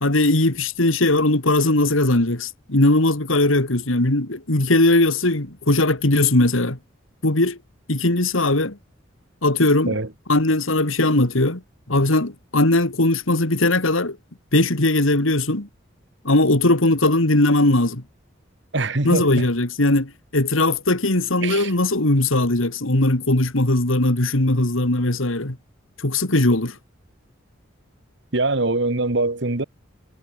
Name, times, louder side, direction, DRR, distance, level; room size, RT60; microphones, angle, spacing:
voice 1, 0.0-6.8 7.2-7.6 7.9-8.8 9.4-9.9 10.3-11.6 11.9-14.2 14.5-15.7 16.2-18.0 19.0-25.6 26.0-26.8, left 2 dB, 90° left, 2.7 m, -19 dB
voice 2, 18.7-19.5 21.4-21.7 28.3-29.6, right 2 dB, 60° right, 1.6 m, -23 dB
head